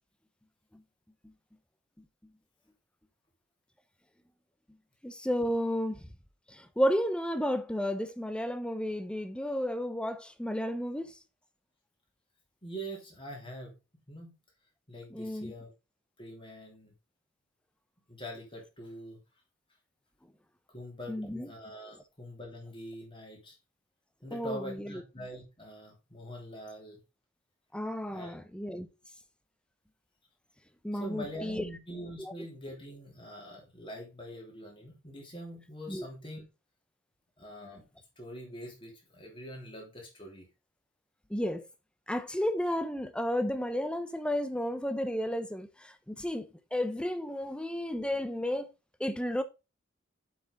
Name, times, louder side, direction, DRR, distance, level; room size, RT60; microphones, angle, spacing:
voice 1, 5.0-6.0 6.5-11.1 15.1-15.5 21.1-21.5 24.3-24.9 27.7-28.9 30.8-31.6 32.2-32.3 35.9-36.0 41.3-41.7 42.1-46.4 46.7-48.7 49.0-49.4, equal, 5° left, 0.7 m, -32 dB
voice 2, 12.6-13.7 14.1-14.3 14.9-15.7 16.2-16.9 18.1-19.2 20.7-23.6 24.2-27.0 28.1-28.3 30.9-36.5 37.4-37.8 38.2-40.5, equal, 25° left, 3.1 m, -44 dB
7.6 x 6.0 x 3.8 m
head